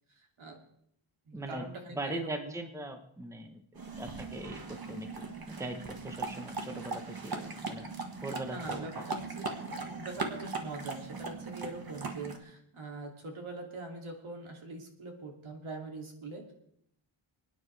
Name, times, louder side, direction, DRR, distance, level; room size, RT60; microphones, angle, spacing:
voice 1, 0.1-0.6 1.3-2.5 8.4-9.5 9.8-16.5, right 2 dB, 75° right, 1 dB, 2.8 m, -43 dB
voice 2, 1.3-3.6 4.0-7.9 8.2-8.9, right 1 dB, 5° right, 6 dB, 1.0 m, -40 dB
sound 1, 3.7-12.4, right 4 dB, 45° right, 1.6 m, -39 dB
28.5 x 9.8 x 3.4 m, 0.71 s
wide cardioid pair, 155°, 49 cm